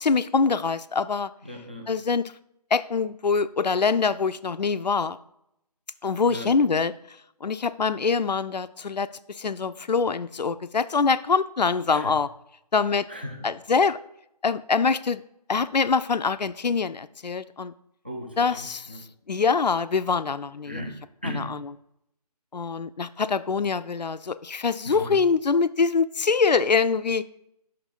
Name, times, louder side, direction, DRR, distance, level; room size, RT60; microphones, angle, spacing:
voice 1, 0.0-1.3 1.9-2.3 2.7-5.2 6.0-6.9 7.4-12.3 12.7-13.1 13.4-14.0 14.4-15.2 15.5-17.7 18.4-18.9 19.3-20.8 21.2-21.7 22.5-27.2, left 5 dB, 90° left, 14 dB, 0.4 m, -24 dB
voice 2, 1.4-1.9 6.3-6.5 11.9-12.1 13.1-13.4 18.0-19.1 20.6-21.6 24.9-25.2, equal, 15° right, 2 dB, 0.4 m, -36 dB
5.7 x 3.8 x 5.2 m, 0.79 s
figure-of-eight pair, 155°, 21 cm